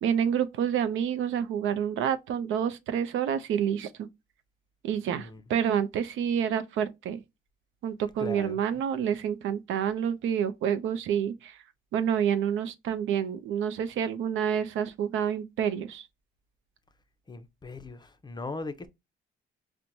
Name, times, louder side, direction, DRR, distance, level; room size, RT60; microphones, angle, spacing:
voice 1, 0.0-4.1 4.8-7.2 7.8-11.6 11.9-16.1, right 8 dB, 80° right, 0.5 m, -28 dB
voice 2, 8.2-8.6 17.3-18.9, left 3 dB, 20° left, 0.5 m, -39 dB
4.4 x 2.1 x 2.6 m
cardioid pair, 90°, 20 cm